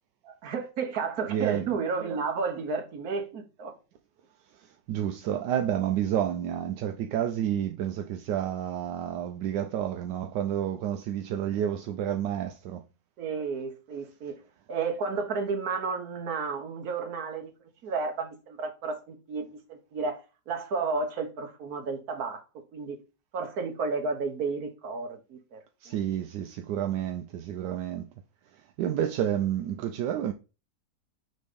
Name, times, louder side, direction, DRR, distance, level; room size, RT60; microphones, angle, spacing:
voice 1, 0.2-3.7 13.2-14.4 14.7-17.5 17.8-20.2 20.5-23.0 23.3-25.9, right 4 dB, 60° right, 1.6 m, -32 dB
voice 2, 1.3-1.7 4.5-12.9 25.8-28.1 28.5-30.3, right 10 dB, 80° right, 1.2 m, -30 dB
6.1 x 3.1 x 5.0 m
omnidirectional pair, 1.9 m